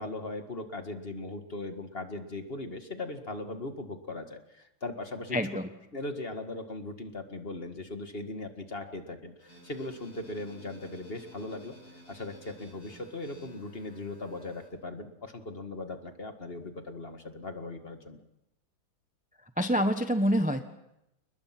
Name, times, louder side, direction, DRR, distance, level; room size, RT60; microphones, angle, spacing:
voice 1, 0.0-5.4 5.9-11.8 12.1-18.2, left 2 dB, 30° left, 6 dB, 2.0 m, -39 dB
voice 2, 5.3-5.6 19.6-20.6, equal, 5° right, 7 dB, 0.7 m, -26 dB
sound 1, 9.4-14.7, equal, 55° left, 7.9 m, -54 dB
29.5 x 20.5 x 6.1 m, 0.86 s
omnidirectional pair, 2.1 m